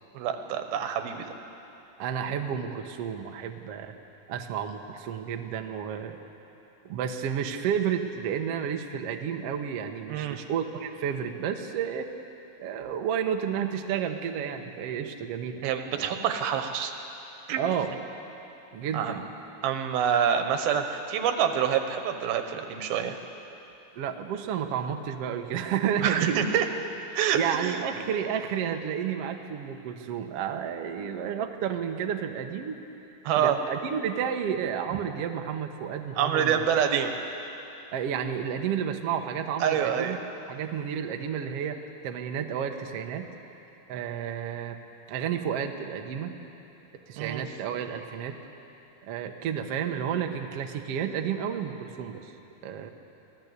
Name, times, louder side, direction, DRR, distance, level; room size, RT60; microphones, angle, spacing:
voice 1, 0.1-1.3 10.1-10.4 15.6-16.9 17.5-17.6 18.9-19.2 19.6-23.2 26.0-26.7 27.1-27.8 33.2-33.6 36.2-37.1 39.6-40.2 47.2-47.4, right 8 dB, 90° right, 6 dB, 3.1 m, -26 dB
voice 2, 2.0-3.9 4.3-6.2 6.8-12.1 12.6-15.6 15.9-16.1 17.6-17.9 18.7-19.2 23.9-26.4 27.3-32.8 33.4-36.8 37.9-40.2 40.5-41.8 42.0-43.3 43.9-44.8 45.1-46.4 47.1-48.4 49.0-52.3 52.6-52.9, right 8 dB, 65° right, 4 dB, 1.6 m, -31 dB
24.5 x 16.5 x 8.2 m, 2.9 s
omnidirectional pair, 4.2 m